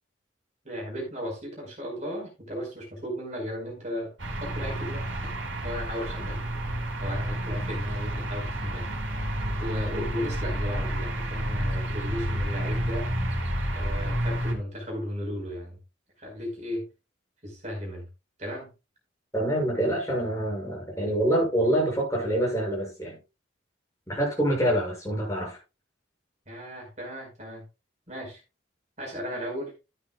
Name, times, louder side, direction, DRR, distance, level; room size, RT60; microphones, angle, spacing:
voice 1, 0.6-4.1 4.4-5.0 5.6-6.4 7.0-8.9 9.6-13.1 13.7-15.8 16.2-16.9 17.4-18.1 18.4-18.7 26.5-27.6 28.1-28.4 29.0-29.7, equal, 35° right, 0 dB, 5.0 m, -35 dB
sound 1, 4.2-14.6, equal, 75° right, 3.2 m, -30 dB
voice 2, 19.3-23.2 24.1-25.6, right 1 dB, 15° left, -2 dB, 7.0 m, -26 dB
13.0 x 10.0 x 2.4 m, 0.27 s
head